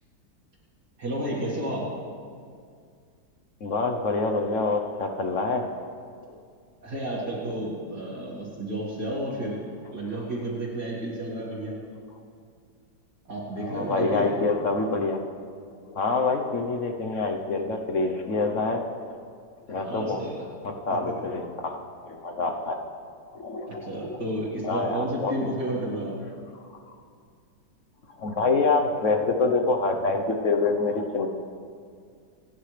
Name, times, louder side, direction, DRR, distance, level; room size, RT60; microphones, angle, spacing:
voice 1, 1.0-2.0 6.8-11.8 13.3-14.3 19.7-20.4 21.1-21.2 23.7-26.2, right 1 dB, 60° right, -5 dB, 2.7 m, -31 dB
voice 2, 3.6-5.7 6.3-6.4 13.5-15.2 15.9-18.9 19.7-20.2 20.6-22.8 23.3-24.2 24.6-25.3 28.2-31.3, left 3 dB, 50° left, 4 dB, 1.0 m, -26 dB
28.5 x 9.7 x 3.3 m, 2.2 s
omnidirectional pair, 2.0 m